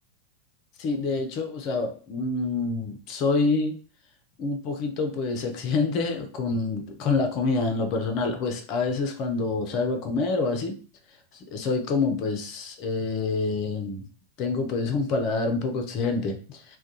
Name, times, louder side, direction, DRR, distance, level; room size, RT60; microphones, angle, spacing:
voice 1, 0.8-3.7 4.4-10.8 11.5-14.1 14.4-16.8, left 3 dB, 40° left, 5 dB, 0.4 m, -27 dB
2.3 x 2.1 x 2.7 m, 0.39 s
figure-of-eight pair, 90°, 0 cm